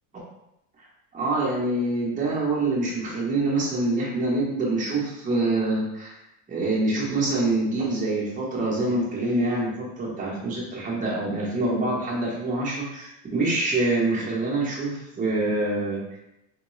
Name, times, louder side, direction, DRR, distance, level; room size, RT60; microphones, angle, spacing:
voice 1, 1.1-6.2 6.5-16.2, right 2 dB, 15° right, -5 dB, 0.9 m, -25 dB
3.7 x 2.1 x 3.0 m, 0.86 s
cardioid pair, 145°, 46 cm